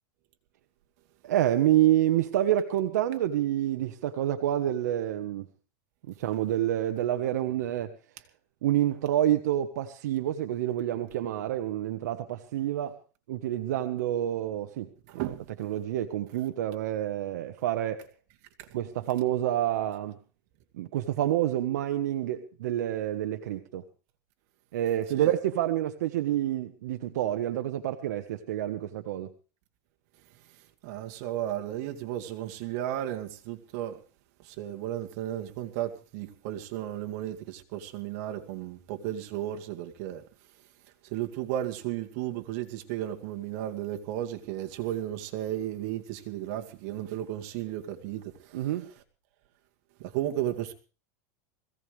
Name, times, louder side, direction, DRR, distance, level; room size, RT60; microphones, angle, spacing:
voice 1, 1.2-5.5 6.1-7.9 8.6-13.0 13.3-15.3 15.6-18.0 18.7-20.2 20.7-23.8 24.7-29.3 48.5-48.9, right 12 dB, 85° right, 1.3 m, -28 dB
voice 2, 15.1-15.5 18.6-18.7 25.2-25.3 30.8-34.0 34.4-40.2 41.1-48.6 50.0-50.7, right 12 dB, 60° right, 2.3 m, -34 dB
21.0 x 16.5 x 3.4 m
supercardioid pair, 145°, 9 cm